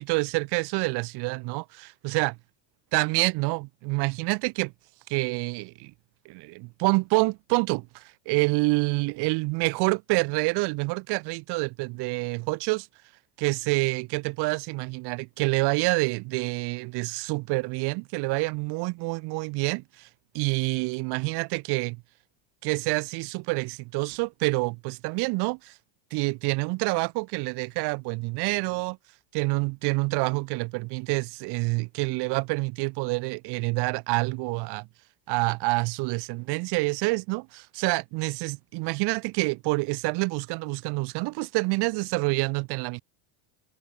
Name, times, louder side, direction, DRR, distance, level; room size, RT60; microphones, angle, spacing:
voice 1, 0.0-2.4 2.9-4.7 5.1-5.9 6.3-12.9 13.4-20.1 20.3-22.0 22.6-25.7 26.1-29.0 29.3-34.9 35.3-43.0, right 26 dB, 50° right, 2.1 m, -27 dB
cardioid pair, 170°, 49 cm